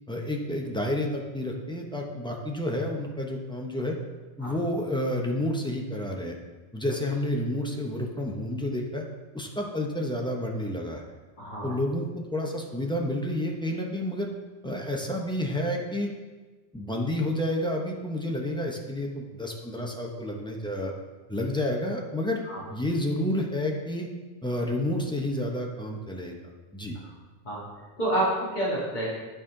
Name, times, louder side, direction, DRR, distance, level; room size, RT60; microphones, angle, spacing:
voice 1, 0.1-4.0 4.4-6.4 6.7-9.0 9.3-11.0 11.6-14.3 14.6-16.1 16.7-20.9 21.3-22.4 22.7-24.1 24.4-26.3 26.7-27.0, left 1 dB, 5° left, 0 dB, 0.6 m, -30 dB
voice 2, 11.4-11.8 22.5-22.6 27.0-27.1 27.4-29.2, right 1 dB, 40° left, -7 dB, 2.1 m, -29 dB
11.0 x 4.2 x 3.7 m, 1.3 s
omnidirectional pair, 1.2 m